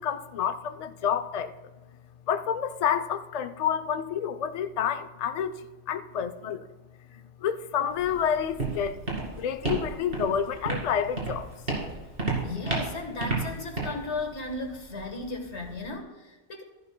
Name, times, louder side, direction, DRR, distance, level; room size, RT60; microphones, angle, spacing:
voice 1, 0.0-1.5 2.3-5.5 5.9-6.7 7.1-8.9 9.4-11.5, left 8 dB, 45° left, 9 dB, 0.5 m, -29 dB
Walk footsteps, 7.9-15.9, right 3 dB, 55° right, 2.6 m, -33 dB
voice 2, 12.4-16.6, left 2 dB, 85° left, 3 dB, 1.7 m, -35 dB
14.0 x 11.0 x 2.2 m, 1.2 s
omnidirectional pair, 1.1 m